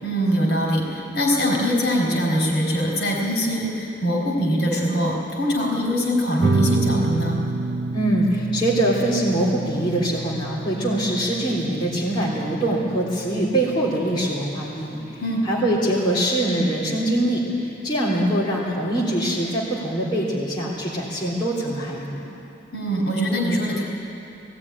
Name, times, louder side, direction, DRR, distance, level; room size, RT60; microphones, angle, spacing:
voice 1, 0.0-7.4 15.2-15.5 22.7-23.8, equal, 65° left, -1 dB, 4.4 m, -23 dB
sound 1, 6.4-17.4, right 3 dB, 75° right, 0.6 m, -29 dB
voice 2, 7.9-22.2, right 1 dB, 25° left, -7 dB, 3.3 m, -23 dB
17.5 x 16.5 x 9.8 m, 3.0 s
head